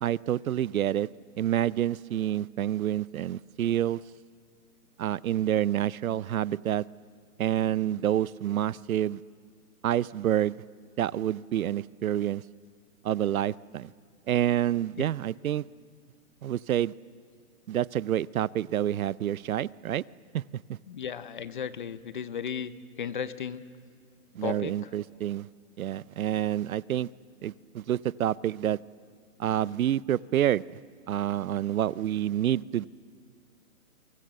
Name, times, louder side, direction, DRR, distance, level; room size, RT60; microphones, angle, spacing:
voice 1, 0.0-1.1 1.4-4.0 5.0-6.8 7.4-9.2 9.8-10.6 11.0-12.4 13.0-13.9 14.3-15.6 16.4-16.9 17.7-20.0 20.3-20.4 24.3-25.5 25.8-27.1 27.4-28.8 29.4-30.6 31.1-32.9, right 11 dB, 70° right, 22 dB, 0.6 m, -28 dB
voice 2, 20.9-22.7 23.0-23.6 24.4-24.7, left 7 dB, 35° left, 15 dB, 0.7 m, -35 dB
29.0 x 24.5 x 7.6 m, 2.3 s
hypercardioid pair, 170°, 44 cm